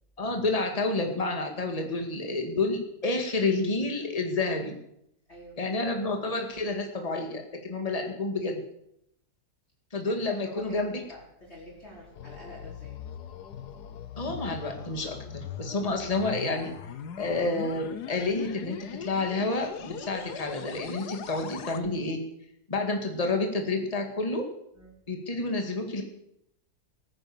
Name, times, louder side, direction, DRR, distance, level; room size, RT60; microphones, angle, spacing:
voice 1, 0.2-4.8 5.6-8.6 9.9-11.0 14.2-16.8 17.2-22.2 22.7-24.5 25.1-26.0, left 2 dB, 20° left, 3 dB, 2.2 m, -29 dB
voice 2, 5.3-5.6 10.1-10.2 10.4-13.0 24.7-24.9, left 1 dB, 40° left, -5 dB, 5.0 m, -47 dB
sound 1, 11.7-21.8, left 8 dB, 85° left, 1.6 m, -41 dB
20.5 x 9.8 x 7.2 m, 0.77 s
omnidirectional pair, 1.7 m